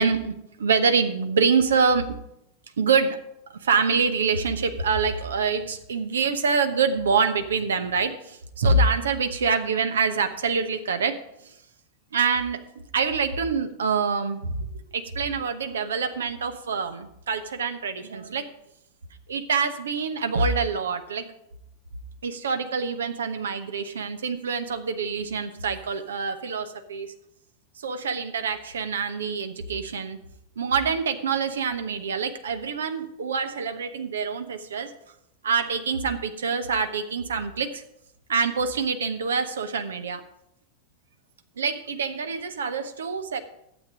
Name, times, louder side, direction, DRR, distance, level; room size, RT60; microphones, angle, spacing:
voice 1, 0.0-2.1 2.8-3.2 3.6-11.2 11.4-11.5 12.1-12.6 12.9-18.5 19.3-21.3 22.2-27.1 27.8-30.2 30.6-34.9 35.4-37.8 38.3-40.2 41.6-43.4, right 5 dB, 65° right, 9 dB, 1.0 m, -25 dB
12.0 x 8.3 x 4.9 m, 0.79 s
figure-of-eight pair, 90°, 0 cm